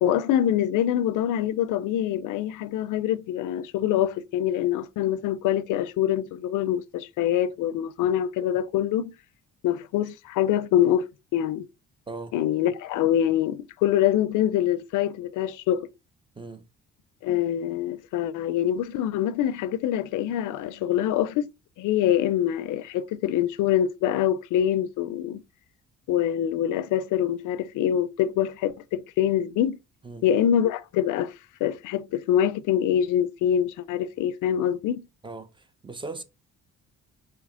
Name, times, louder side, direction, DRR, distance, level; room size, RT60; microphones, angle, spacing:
voice 1, 0.0-9.1 9.6-11.1 11.3-11.7 12.3-15.9 17.2-21.5 21.8-25.4 26.1-29.8 30.2-31.3 31.6-35.1, left 10 dB, 85° left, 0.5 m, -25 dB
voice 2, 35.8-36.2, right 3 dB, 15° right, 0.7 m, -37 dB
5.0 x 2.9 x 3.7 m
cardioid pair, 90°, 30 cm